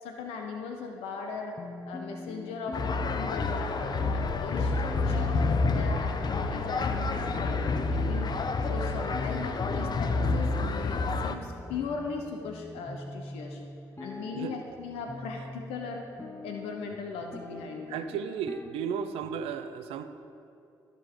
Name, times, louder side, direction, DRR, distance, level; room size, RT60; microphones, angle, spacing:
voice 1, 0.0-1.6 1.8-5.4 5.7-8.3 8.6-13.6 14.0-16.1 16.4-18.2, left 4 dB, 80° left, 3 dB, 0.7 m, -38 dB
sound 1, 1.6-19.6, left 2 dB, 25° left, 1.0 m, -45 dB
sound 2, 2.7-11.3, left 3 dB, 45° left, 0.6 m, -28 dB
voice 2, 17.9-20.1, right 7 dB, 75° right, 9 dB, 0.5 m, -34 dB
13.5 x 5.1 x 3.8 m, 2.6 s
hypercardioid pair, 45°, 10 cm